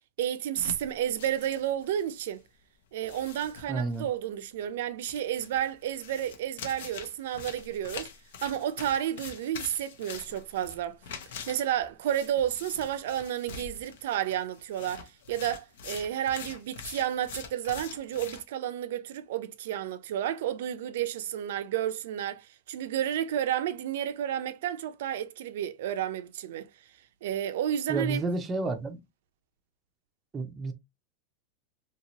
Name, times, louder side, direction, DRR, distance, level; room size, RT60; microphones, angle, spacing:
voice 1, 0.2-2.4 2.9-8.1 8.4-11.0 11.5-26.7 27.2-28.2, right 10 dB, 70° right, 0.4 m, -31 dB
sound 1, 0.6-2.1 2.4-2.5 3.0-4.0 5.1-18.4, left 7 dB, 75° left, 0.7 m, -44 dB
voice 2, 3.7-4.1 27.9-29.0 30.3-30.7, right 3 dB, 15° right, 0.5 m, -30 dB
2.9 x 2.8 x 2.9 m
supercardioid pair, 160°, 0 cm